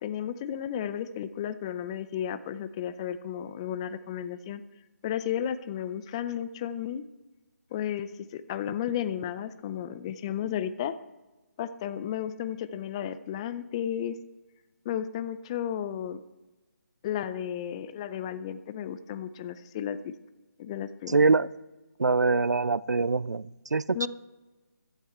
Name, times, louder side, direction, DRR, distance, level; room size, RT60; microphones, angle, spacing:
voice 1, 0.0-4.6 5.0-7.0 7.7-10.9 11.6-14.2 14.9-16.2 17.0-20.1 20.6-21.5 23.9-24.1, left 10 dB, 20° left, 13 dB, 0.5 m, -33 dB
voice 2, 21.1-21.5 22.0-24.1, right 4 dB, 85° right, 21 dB, 0.5 m, -24 dB
14.0 x 11.5 x 4.4 m, 1.2 s
figure-of-eight pair, 155°, 9 cm